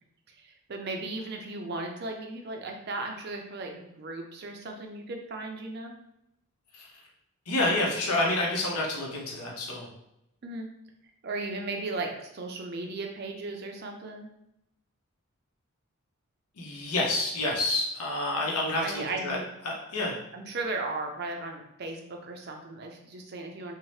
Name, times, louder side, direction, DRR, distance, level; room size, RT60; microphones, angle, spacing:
voice 1, 0.3-5.9 10.4-10.7 11.2-14.3 18.8-19.5 20.3-23.7, right 2 dB, 45° right, 2 dB, 0.4 m, -36 dB
voice 2, 7.5-9.9 16.6-19.4 19.6-20.2, left 2 dB, 85° left, -2 dB, 0.7 m, -28 dB
2.7 x 2.1 x 3.1 m, 0.82 s
head